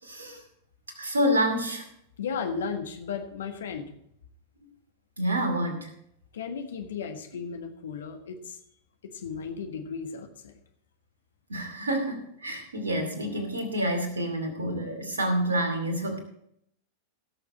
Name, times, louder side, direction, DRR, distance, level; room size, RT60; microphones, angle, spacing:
voice 1, 0.0-0.4 1.0-1.9 5.2-5.9 11.5-16.2, equal, 70° right, 5 dB, 2.4 m, -28 dB
voice 2, 2.2-3.9 6.3-8.6 9.1-10.5, left 6 dB, 65° left, 5 dB, 1.5 m, -35 dB
17.0 x 6.7 x 4.3 m, 0.72 s
figure-of-eight pair, 90°, 0 cm